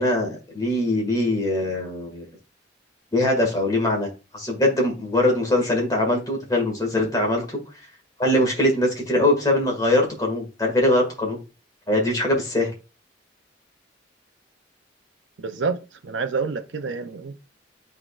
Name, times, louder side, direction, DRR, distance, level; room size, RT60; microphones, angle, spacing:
voice 1, 0.0-2.3 3.1-7.6 8.2-11.4 11.9-12.7, left 1 dB, 20° left, 1.9 m, -22 dB
voice 2, 15.4-17.4, right 4 dB, 75° right, 0.6 m, -28 dB
11.0 x 3.7 x 2.4 m
head